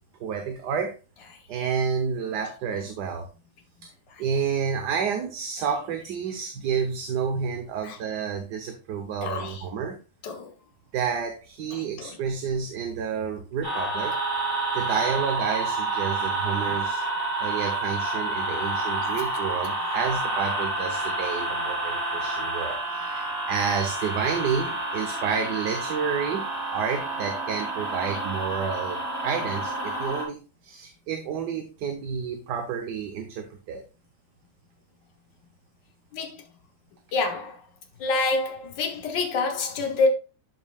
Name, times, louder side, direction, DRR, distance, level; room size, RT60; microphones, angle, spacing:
voice 1, 0.2-1.0 1.5-3.3 3.8-3.9 4.2-10.0 10.9-14.1 14.7-17.0 17.4-30.4 30.6-33.8, right 6 dB, 70° right, 1.5 m, -30 dB
voice 2, 9.2-9.6 10.2-10.5 12.0-12.1 36.1-36.4 37.1-37.6 38.0-40.1, left 3 dB, 80° left, 1.8 m, -26 dB
sound 1, 13.6-30.3, right 2 dB, 55° right, 4.7 m, -29 dB
12.0 x 5.4 x 2.3 m
omnidirectional pair, 1.9 m